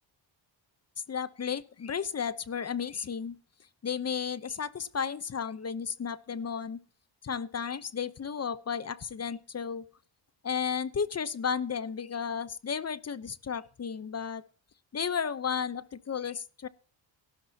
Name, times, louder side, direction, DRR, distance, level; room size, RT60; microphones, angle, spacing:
voice 1, 1.1-3.4 3.8-6.8 7.2-9.9 10.4-14.4 14.9-16.7, left 7 dB, 35° left, 0.9 m, -33 dB
15.5 x 13.0 x 2.9 m
cardioid pair, 115°, 47 cm